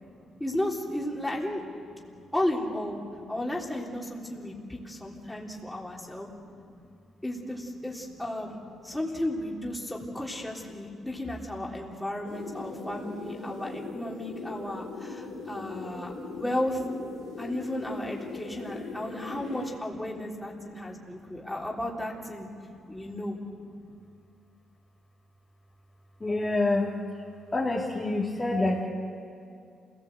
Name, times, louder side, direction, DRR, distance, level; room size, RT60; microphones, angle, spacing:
voice 1, 0.4-1.6 2.3-3.0 3.3-6.3 7.2-8.6 8.8-16.8 17.4-22.5 22.9-23.4, left 1 dB, 5° left, -2 dB, 3.5 m, -34 dB
sound 1, 12.2-19.8, left 3 dB, 90° left, 3.6 m, -40 dB
voice 2, 26.2-27.0 27.5-28.9, left 2 dB, 20° left, -4 dB, 3.0 m, -27 dB
27.5 x 18.0 x 8.1 m, 2.4 s
cardioid pair, 90°, 0 cm